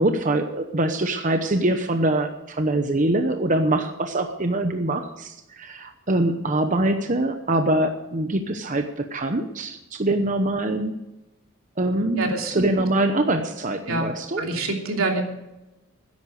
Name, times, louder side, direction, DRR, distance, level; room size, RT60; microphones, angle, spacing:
voice 1, 0.0-11.1 11.8-14.4, right 1 dB, 35° right, 6 dB, 0.9 m, -24 dB
voice 2, 12.2-12.7 13.2-13.3 13.8-15.2, right 2 dB, 85° right, 2 dB, 2.9 m, -26 dB
13.5 x 10.5 x 6.5 m, 0.97 s
head